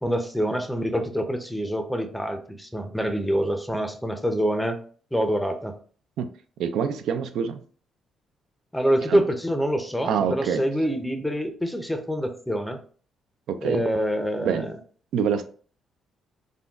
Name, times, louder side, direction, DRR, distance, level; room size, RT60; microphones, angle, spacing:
voice 1, 0.0-4.8 5.1-5.7 8.7-12.8 13.6-14.8, equal, 5° left, 0.5 m, -26 dB
voice 2, 6.6-7.6 9.1-9.2 10.0-10.7 13.5-13.8 14.4-14.7 15.1-15.4, right 7 dB, 80° right, 0.3 m, -25 dB
3.7 x 2.1 x 2.3 m
cardioid pair, 90°, 0 cm